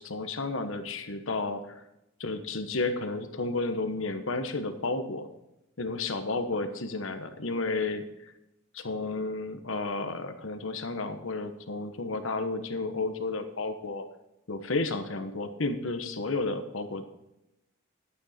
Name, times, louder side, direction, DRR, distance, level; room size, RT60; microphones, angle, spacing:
voice 1, 0.0-1.8 2.2-5.3 5.8-8.0 8.7-14.0 14.5-17.0, left 3 dB, 65° left, 7 dB, 1.2 m, -32 dB
12.0 x 9.0 x 4.3 m, 0.88 s
head